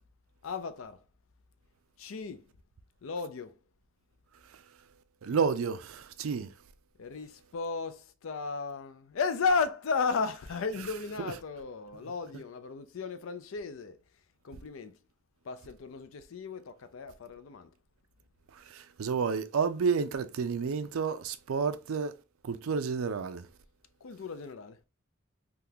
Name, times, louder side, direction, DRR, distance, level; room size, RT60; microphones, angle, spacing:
voice 1, 0.4-1.0 2.0-2.4 3.0-3.5 7.0-14.0 14.4-14.9 15.5-17.7 24.0-24.8, left 4 dB, 70° left, 0.5 m, -34 dB
voice 2, 5.2-6.5 11.2-11.3 18.7-22.1 22.4-23.5, right 5 dB, 85° right, 0.4 m, -30 dB
3.6 x 2.3 x 2.7 m
head